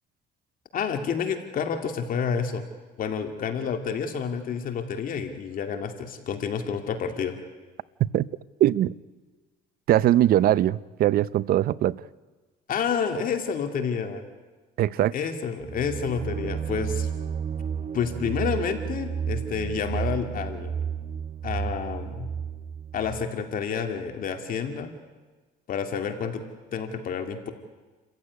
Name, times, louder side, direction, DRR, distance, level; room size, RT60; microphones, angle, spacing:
voice 1, 0.7-2.6 3.0-7.4 12.7-14.2 15.1-17.1 17.9-20.7 21.4-22.3 22.9-24.9 25.7-26.4 26.7-27.5, left 6 dB, 55° left, 6 dB, 2.4 m, -29 dB
voice 2, 8.6-8.9 9.9-12.0 14.8-15.1, right 13 dB, 60° right, 19 dB, 0.7 m, -21 dB
sound 1, 15.6-23.3, right 7 dB, 45° right, 1.1 m, -32 dB
29.0 x 15.0 x 9.6 m, 1.3 s
cardioid pair, 110°, 17 cm